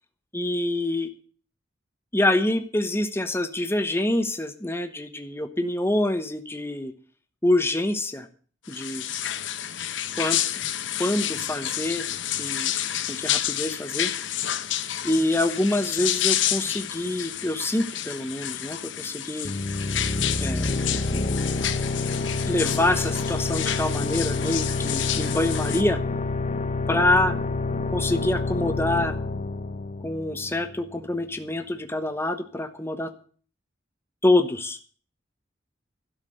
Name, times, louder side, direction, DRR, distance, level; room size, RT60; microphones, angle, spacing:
voice 1, 0.3-1.1 2.1-6.9 7.4-8.3 8.7-9.1 10.2-10.4 11.0-12.0 12.4-12.7 13.1-14.1 15.0-19.5 20.4-20.7 21.1-21.2 22.5-26.0 26.9-27.3 27.9-29.1 30.0-33.1 34.2-34.8, left 1 dB, 15° left, 8 dB, 1.2 m, -26 dB
sound 1, 8.7-25.8, left 11 dB, 75° left, 0.9 m, -30 dB
sound 2, 19.4-30.8, left 3 dB, 40° left, 1.0 m, -28 dB
12.0 x 7.1 x 9.4 m, 0.42 s
head